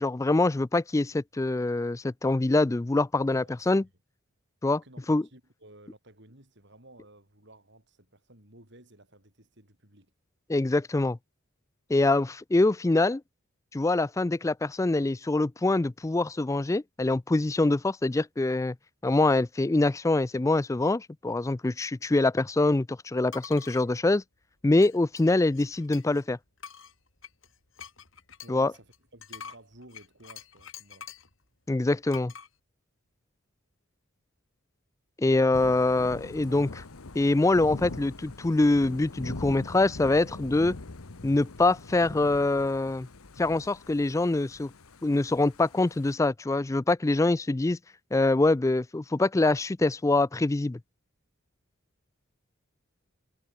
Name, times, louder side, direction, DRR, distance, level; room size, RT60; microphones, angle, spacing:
voice 1, 0.0-3.8 4.6-4.8 5.1-5.2 10.5-11.2 11.9-13.2 13.7-18.8 19.0-24.2 24.6-26.4 28.5-28.7 31.7-32.3 35.2-36.8 37.1-40.8 41.2-43.1 43.4-44.7 45.0-47.8 48.1-50.8, left 2 dB, 15° left, 0.3 m, -24 dB
voice 2, 3.3-3.8 4.7-10.1 28.4-31.1, right 1 dB, 55° right, 7.9 m, -54 dB
sound 1, 23.3-23.8 24.8-26.2 26.6-31.3 32.1-32.5, left 7 dB, 60° left, 5.2 m, -46 dB
Thunder / Rain, 35.5-46.2, left 2 dB, 80° left, 1.2 m, -43 dB
head